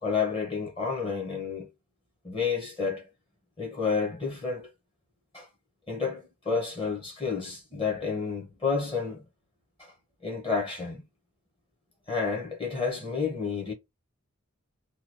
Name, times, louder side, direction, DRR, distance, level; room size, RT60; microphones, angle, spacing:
voice 1, 0.0-1.7 2.2-3.1 3.6-4.7 5.3-5.5 5.9-9.2 9.8-9.9 10.2-11.0 12.1-13.7, left 5 dB, 25° left, 0.9 m, -30 dB
2.9 x 2.3 x 2.9 m
head